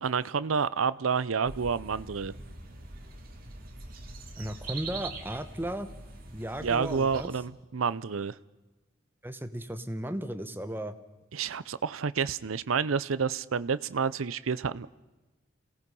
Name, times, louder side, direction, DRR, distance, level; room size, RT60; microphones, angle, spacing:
voice 1, 0.0-2.3 6.6-8.4 11.3-14.9, right 6 dB, 90° right, 16 dB, 0.6 m, -29 dB
sound 1, 1.4-7.3, right 3 dB, 45° right, 2.6 m, -43 dB
voice 2, 4.4-5.9 6.3-7.3 9.2-10.9, right 1 dB, 10° right, 9 dB, 1.1 m, -35 dB
28.0 x 18.0 x 5.5 m, 1.1 s
head